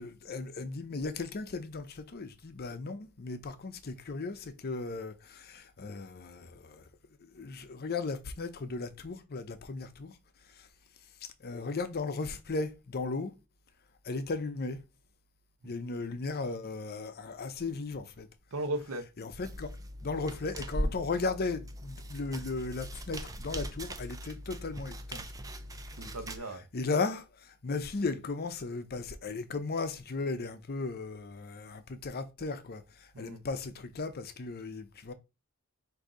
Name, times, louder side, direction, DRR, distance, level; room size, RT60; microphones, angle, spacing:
voice 1, 0.0-6.8 7.3-10.2 10.6-10.7 11.4-13.3 14.0-14.8 15.6-18.3 19.2-19.7 20.0-25.2 26.7-35.1, left 3 dB, 45° left, 0.6 m, -36 dB
voice 2, 18.5-19.1 20.8-20.9 26.0-26.7 33.1-33.4, right 2 dB, 80° right, 0.9 m, -37 dB
sound 1, 19.4-26.4, equal, 15° right, 0.5 m, -40 dB
3.9 x 2.7 x 4.8 m
head